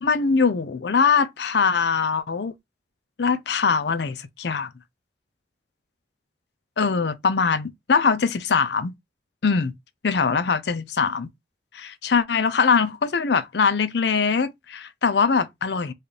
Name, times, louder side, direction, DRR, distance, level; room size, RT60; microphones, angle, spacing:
voice 1, 0.0-2.5 3.2-4.7 6.8-8.9 9.4-9.7 10.0-11.3 11.7-15.9, left 5 dB, 70° left, 0.5 m, -22 dB
4.1 x 2.4 x 3.3 m
head